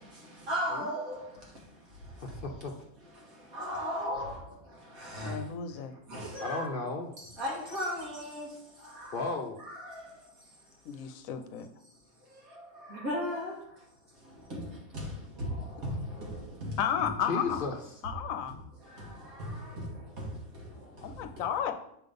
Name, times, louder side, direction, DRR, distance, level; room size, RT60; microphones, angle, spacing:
voice 1, 0.5-1.2 3.5-4.4 5.1-5.3 6.1-6.6 7.4-8.5 12.9-13.5 14.5-14.6 15.4-15.5 15.8-15.9 16.6-16.7, equal, 80° right, -2 dB, 2.3 m, -34 dB
voice 2, 2.2-2.7 6.4-7.1 9.1-9.6 17.3-17.7, left 3 dB, 50° left, 3 dB, 0.7 m, -33 dB
voice 3, 5.2-5.9 10.9-11.7 16.8-17.7 18.0-18.5 21.0-21.7, left 8 dB, 75° left, 8 dB, 1.0 m, -33 dB
6.6 x 3.8 x 5.3 m, 0.74 s
omnidirectional pair, 1.5 m